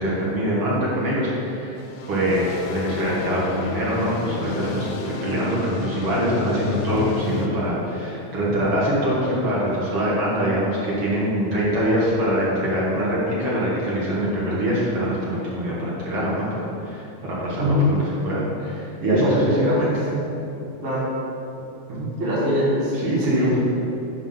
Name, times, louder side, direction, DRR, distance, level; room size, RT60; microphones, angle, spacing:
voice 1, 0.0-1.8 2.1-19.9 21.9-22.1 22.9-23.6, equal, 55° right, -7 dB, 2.0 m, -24 dB
sound 1, 1.8-7.5, left 5 dB, 85° left, 1.5 m, -31 dB
voice 2, 17.6-17.9 19.1-19.8 20.8-21.1 22.2-23.6, left 1 dB, 30° right, -7 dB, 1.1 m, -22 dB
9.6 x 3.5 x 5.5 m, 2.8 s
omnidirectional pair, 3.6 m